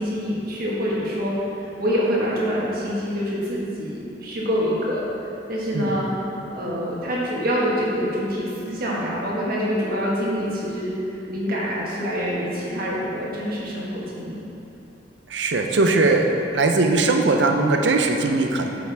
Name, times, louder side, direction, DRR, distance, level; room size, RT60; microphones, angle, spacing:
voice 1, 0.0-5.0 5.5-10.9 11.3-14.4, equal, 55° right, -6 dB, 1.7 m, -26 dB
voice 2, 15.3-16.3 16.5-18.7, right 3 dB, 80° right, 4 dB, 0.7 m, -20 dB
8.7 x 7.1 x 3.5 m, 2.9 s
head